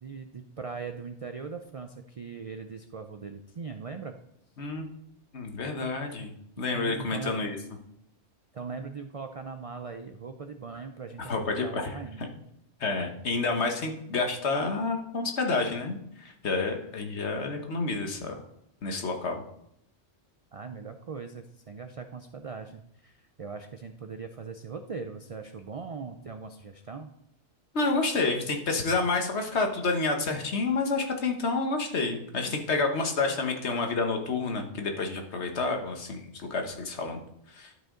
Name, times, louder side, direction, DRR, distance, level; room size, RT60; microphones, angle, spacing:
voice 1, 0.0-4.2 6.6-7.4 8.5-12.3 20.5-27.1, right 5 dB, 55° right, 7 dB, 0.4 m, -40 dB
voice 2, 5.3-6.3 6.6-7.6 11.3-12.3 12.8-18.4 18.8-19.4 27.7-37.2 37.5-37.7, left 3 dB, 65° left, 4 dB, 1.4 m, -29 dB
11.5 x 5.2 x 3.8 m, 0.77 s
omnidirectional pair, 1.2 m